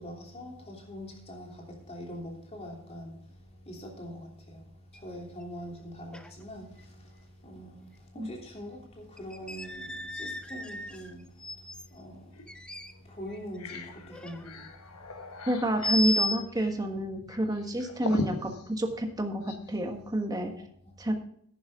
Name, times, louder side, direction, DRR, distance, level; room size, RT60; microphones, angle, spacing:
voice 1, 0.0-15.5 20.4-21.0, equal, 30° left, 3.2 m, -44 dB
sound 1, 4.9-5.0 5.4-5.5 6.1-6.4 6.8-6.9 8.4-8.5 9.2-11.9 12.5-13.8 14.0-14.5 15.8-16.4, left 1 dB, 5° left, 0.7 m, -34 dB
sound 2, 12.3-12.5 12.9-13.0 13.4-19.7, left 2 dB, 90° left, 1.3 m, -40 dB
voice 2, 15.5-20.5 21.0-21.1, right 1 dB, 20° right, 1.5 m, -29 dB
11.0 x 10.5 x 3.7 m
head